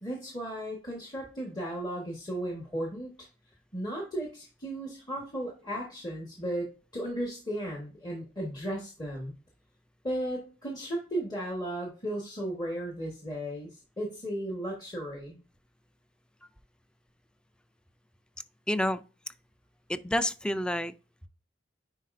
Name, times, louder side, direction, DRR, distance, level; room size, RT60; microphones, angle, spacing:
voice 1, 0.0-3.1 3.7-9.3 10.0-15.4, right 1 dB, 20° left, 1.3 m, -35 dB
voice 2, 18.7-19.0 19.9-20.9, left 1 dB, 5° left, 0.3 m, -28 dB
9.8 x 4.0 x 2.5 m
head